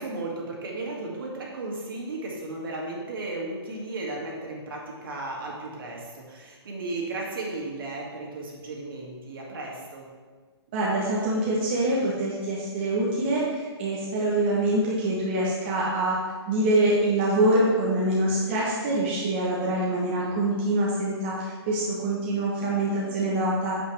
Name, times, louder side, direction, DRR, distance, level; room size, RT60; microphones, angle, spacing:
voice 1, 0.0-10.1, right 2 dB, 55° right, -2 dB, 2.2 m, -35 dB
voice 2, 10.7-16.1 16.5-23.7, right 1 dB, 25° right, -5 dB, 1.0 m, -25 dB
8.3 x 7.4 x 3.3 m, 1.5 s
hypercardioid pair, 175°, 14 cm